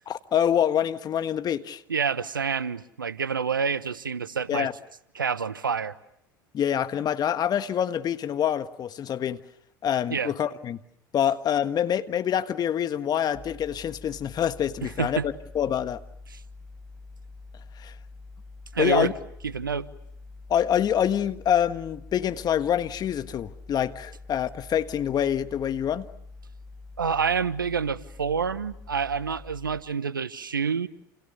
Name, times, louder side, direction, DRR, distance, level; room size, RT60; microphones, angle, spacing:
voice 1, 0.1-1.8 4.5-4.7 6.5-9.4 9.8-10.8 11.1-16.0 17.8-17.9 18.8-19.1 20.5-26.1, left 9 dB, 40° left, 1.6 m, -26 dB
voice 2, 1.9-4.7 5.1-5.9 10.1-10.3 14.8-15.3 18.7-19.1 19.4-19.9 27.0-30.9, right 6 dB, 90° right, 1.0 m, -27 dB
sound 1, 13.3-29.8, left 3 dB, 5° left, 3.9 m, -46 dB
30.0 x 29.0 x 6.7 m
hypercardioid pair, 75°, 11 cm